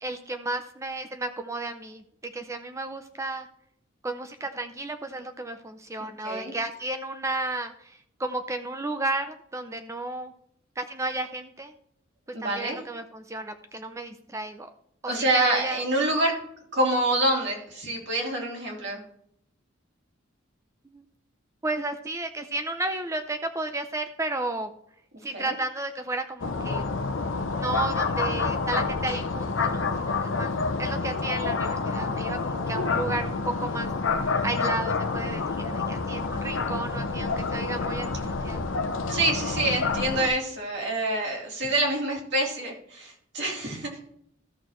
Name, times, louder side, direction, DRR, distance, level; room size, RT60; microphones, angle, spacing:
voice 1, 0.0-3.5 4.0-10.3 10.8-11.7 12.3-14.7 15.0-15.8 20.9-21.0 21.6-24.7 25.2-26.8 27.6-30.5 30.8-33.9 34.4-38.7, right 2 dB, 15° right, 7 dB, 0.5 m, -33 dB
voice 2, 6.2-6.5 12.3-12.8 15.1-16.4 16.7-19.0 25.3-25.6 39.1-44.1, right 1 dB, 60° right, -1 dB, 2.7 m, -26 dB
sound 1, 26.4-40.3, left 4 dB, 70° left, 0.7 m, -28 dB
13.5 x 6.5 x 3.1 m, 0.68 s
head